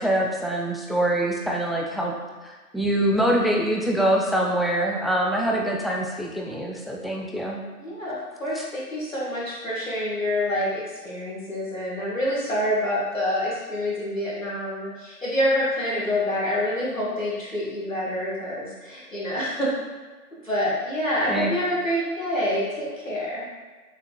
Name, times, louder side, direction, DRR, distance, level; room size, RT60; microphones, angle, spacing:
voice 1, 0.0-2.1 2.4-7.6 21.3-21.5, right 1 dB, ahead, -2 dB, 0.3 m, -24 dB
voice 2, 7.8-19.7 20.4-23.5, left 1 dB, 55° left, -6 dB, 1.4 m, -27 dB
6.5 x 2.3 x 2.3 m, 1.3 s
figure-of-eight pair, 175°, 47 cm